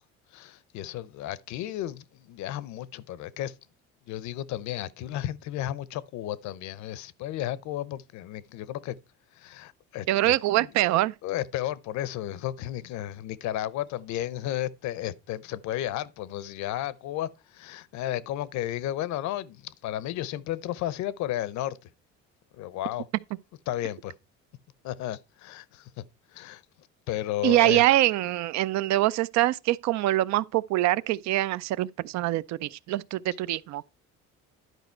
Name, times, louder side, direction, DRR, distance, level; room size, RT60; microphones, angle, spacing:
voice 1, 0.3-3.5 4.1-9.0 9.3-21.8 22.5-23.1 23.7-24.1 24.8-26.0 26.3-26.6 27.1-27.8, left 13 dB, 70° left, 0.7 m, -33 dB
voice 2, 10.1-11.1 27.4-33.8, right 16 dB, 70° right, 0.5 m, -24 dB
11.0 x 5.0 x 4.4 m
cardioid pair, 115°, 29 cm